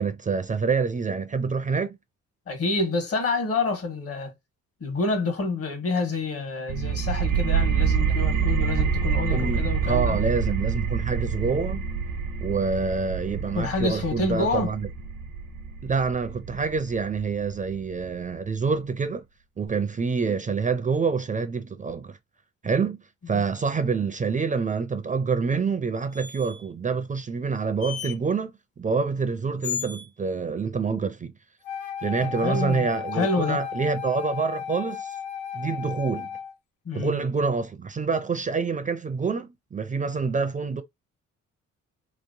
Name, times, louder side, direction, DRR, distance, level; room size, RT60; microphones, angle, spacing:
voice 1, 0.0-2.0 9.3-11.8 12.4-14.9 15.8-19.2 19.6-22.2 22.6-23.0 23.3-28.5 28.8-31.3 32.0-35.2 35.5-36.3 36.9-40.8, right 5 dB, 25° right, 0.4 m, -27 dB
voice 2, 2.5-4.3 4.8-10.2 13.5-14.7 23.3-23.4 32.2-33.6 36.8-37.2, left 3 dB, 50° left, 1.4 m, -28 dB
sound 1, 6.7-18.1, right 6 dB, 90° right, 0.8 m, -27 dB
sound 2, 26.1-26.7 27.8-28.1 29.6-30.1, left 9 dB, 25° left, 0.5 m, -34 dB
Wind instrument woodwind instrument, 31.6-36.5, left 8 dB, 90° left, 0.7 m, -34 dB
3.0 x 2.9 x 2.6 m
cardioid pair, 90°, 30 cm